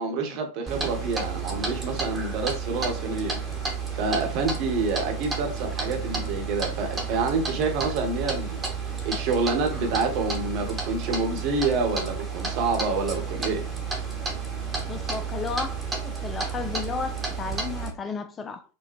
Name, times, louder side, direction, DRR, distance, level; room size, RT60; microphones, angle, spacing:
voice 1, 0.0-3.4 3.9-13.6, right 4 dB, 45° right, 1.0 m, -28 dB
Clock, 0.7-17.9, right 5 dB, 15° right, 1.0 m, -31 dB
voice 2, 14.9-18.6, left 5 dB, 20° left, 0.3 m, -33 dB
4.3 x 2.2 x 3.0 m
figure-of-eight pair, 90°, 0 cm